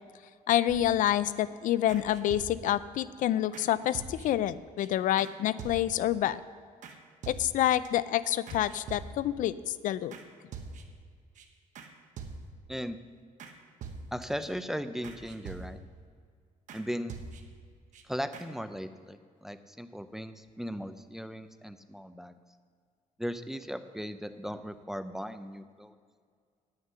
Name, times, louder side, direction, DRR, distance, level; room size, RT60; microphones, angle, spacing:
voice 1, 0.5-6.4 7.3-10.1, left 12 dB, 70° left, 16 dB, 0.4 m, -28 dB
sound 1, 0.7-1.3 1.9-2.8 3.5-3.7 3.9-4.5 4.8-4.9 5.2-5.3 5.6-6.1 6.8-7.0 7.2-7.9 8.5-9.4 10.1-10.3 10.5-11.0 11.4-11.5 11.8-11.9 12.2-12.7 13.4-13.5 13.8-14.5 15.0-16.0 16.7-16.8 17.1-17.6 17.9-18.0 18.3-18.5, right 4 dB, 65° right, 1.1 m, -44 dB
voice 2, 14.1-15.8 16.7-17.2 18.1-22.4 23.2-26.0, equal, 5° right, 10 dB, 0.4 m, -37 dB
9.6 x 9.6 x 5.5 m, 2.1 s
cardioid pair, 135°, 14 cm